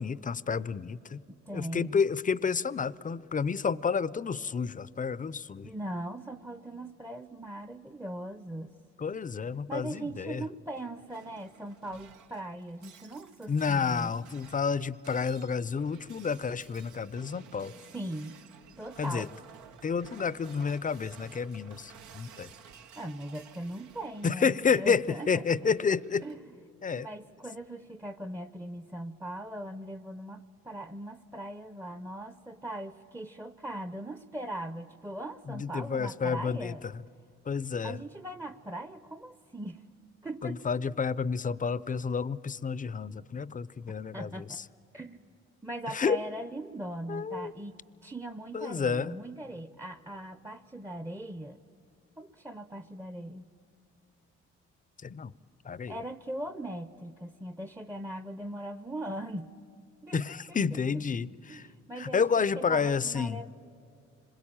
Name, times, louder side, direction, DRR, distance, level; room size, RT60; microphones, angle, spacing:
voice 1, 0.0-1.2 1.5-5.7 9.0-10.4 13.5-17.7 19.0-19.3 19.8-22.5 24.2-26.2 26.8-27.1 35.5-36.9 37.5-38.0 40.4-44.6 45.9-46.2 47.1-47.5 48.5-49.2 55.0-55.3 55.6-56.0 60.1-61.7 62.0-63.4, left 5 dB, 30° left, 19 dB, 0.6 m, -30 dB
voice 2, 1.3-2.0 5.6-8.7 9.7-14.1 17.7-18.4 18.8-19.3 23.0-25.5 26.2-26.5 26.9-36.8 37.8-39.8 40.2-40.6 44.1-44.6 44.9-45.4 45.6-51.6 52.2-53.5 55.9-59.5 60.0-60.6 60.9-61.0 61.5-63.5, right 1 dB, 10° right, 11 dB, 0.7 m, -40 dB
Shatter, 10.7-26.3, right 7 dB, 80° right, 1.0 m, -54 dB
26.0 x 21.5 x 8.8 m, 2.6 s
supercardioid pair, 60°, 29 cm